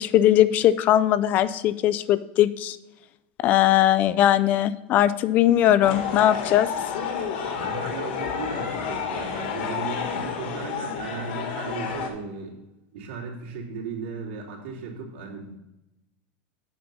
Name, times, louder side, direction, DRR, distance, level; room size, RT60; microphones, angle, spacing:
voice 1, 0.0-2.8 3.4-6.7, left 12 dB, 25° left, 16 dB, 0.3 m, -20 dB
sound 1, 5.8-12.1, left 6 dB, 70° left, 1.8 m, -30 dB
voice 2, 7.4-12.5 12.9-15.6, right 4 dB, 75° right, -2 dB, 2.8 m, -36 dB
8.5 x 6.0 x 5.3 m, 0.94 s
supercardioid pair, 180°, 6 cm